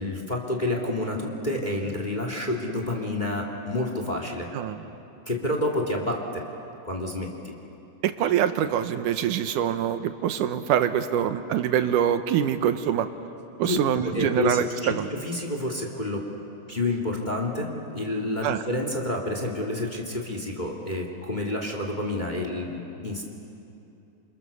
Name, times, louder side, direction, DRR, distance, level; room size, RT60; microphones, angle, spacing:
voice 1, 0.0-4.5 5.3-6.4 6.8-7.5 13.6-14.9 15.2-16.2 16.7-23.2, left 2 dB, 15° left, 2 dB, 2.2 m, -29 dB
voice 2, 8.0-13.1 13.6-15.1 18.4-18.6, right 9 dB, 80° right, 9 dB, 2.4 m, -24 dB
28.5 x 27.5 x 7.0 m, 2.8 s
omnidirectional pair, 3.7 m